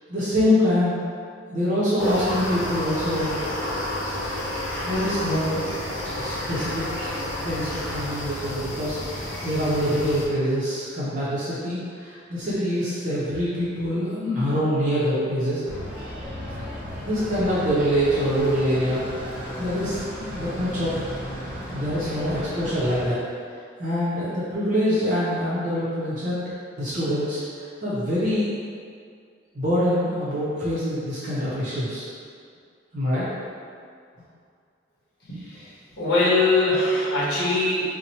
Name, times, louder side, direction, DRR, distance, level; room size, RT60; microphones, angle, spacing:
voice 1, 0.1-1.0 1.5-3.4 4.8-5.7 6.2-7.1 7.4-15.6 17.0-19.0 19.6-21.1 21.7-23.2 23.8-26.4 26.8-27.4 27.8-28.5 29.5-32.1 32.9-33.3, equal, 40° right, -10 dB, 0.6 m, -25 dB
sound 1, 2.0-10.3, left 1 dB, 85° left, 0.7 m, -30 dB
sound 2, 15.6-23.1, equal, 10° right, 0.7 m, -35 dB
voice 2, 35.3-38.0, left 2 dB, 55° left, -9 dB, 1.0 m, -22 dB
2.9 x 2.1 x 4.1 m, 2.2 s
head